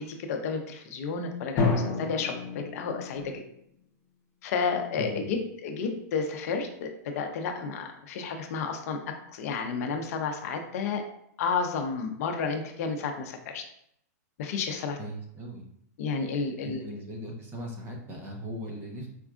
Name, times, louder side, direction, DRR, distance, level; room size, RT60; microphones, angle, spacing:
voice 1, 0.0-3.3 4.4-9.0 9.3-11.0 11.4-13.6 14.4-15.0 16.0-16.8, left 5 dB, 60° left, 4 dB, 0.5 m, -31 dB
Drum, 1.6-3.5, left 4 dB, 35° left, 0.8 m, -29 dB
voice 2, 15.0-15.7 16.6-19.1, equal, 25° right, 0 dB, 0.8 m, -38 dB
4.3 x 2.3 x 2.4 m, 0.72 s
hypercardioid pair, 135°, 9 cm